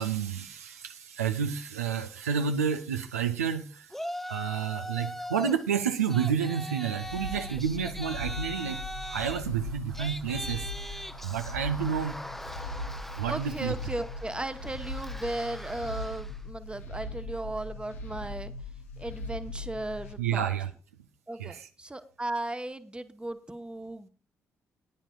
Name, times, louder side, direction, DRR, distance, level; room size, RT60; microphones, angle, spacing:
voice 1, 0.0-3.9 4.3-8.8 9.1-12.2 13.2-13.7 20.2-20.7 21.4-21.7, right 7 dB, 80° right, 8 dB, 0.5 m, -30 dB
Yell, 3.9-5.6 5.9-16.4, equal, 5° left, 0.7 m, -40 dB
sound 1, 7.0-20.1, left 1 dB, 75° left, 0.8 m, -39 dB
voice 2, 13.3-18.5 19.0-20.5 21.3-24.1, right 1 dB, 15° right, 10 dB, 1.0 m, -36 dB
19.5 x 10.0 x 2.3 m, 0.35 s
figure-of-eight pair, 40°, 8 cm